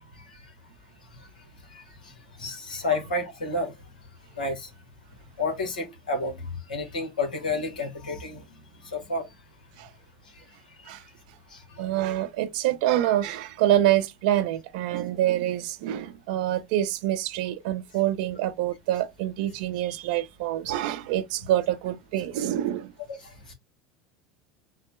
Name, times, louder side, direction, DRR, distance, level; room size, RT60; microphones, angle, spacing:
voice 1, 1.7-2.1 2.4-3.7 4.4-4.7 5.4-8.4 8.8-9.3 10.8-10.9 11.5-11.6 23.2-23.5, left 2 dB, 90° left, 1.1 m, -30 dB
voice 2, 11.8-22.9, right 13 dB, 70° right, 0.5 m, -26 dB
3.8 x 2.1 x 3.0 m
hypercardioid pair, 80°, 4 cm